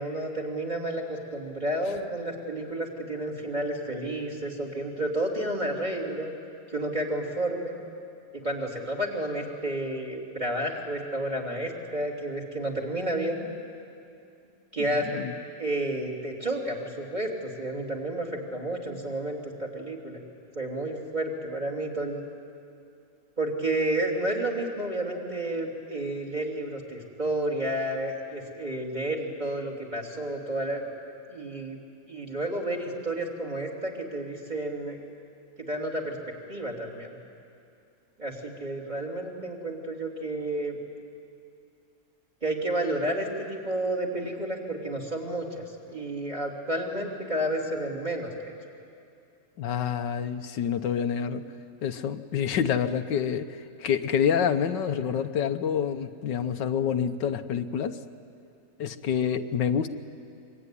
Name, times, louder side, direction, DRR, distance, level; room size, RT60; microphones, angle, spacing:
voice 1, 0.0-6.3 6.7-7.8 8.4-13.5 14.7-15.3 15.6-20.2 20.5-22.2 23.4-30.9 31.3-31.8 32.1-35.0 35.7-36.2 36.5-37.2 38.2-40.8 42.4-48.5, right 1 dB, 25° right, 0 dB, 3.3 m, -31 dB
voice 2, 49.6-51.4 51.8-58.0 58.8-59.9, left 8 dB, 85° left, 9 dB, 1.6 m, -27 dB
25.0 x 23.5 x 9.9 m, 2.5 s
omnidirectional pair, 1.9 m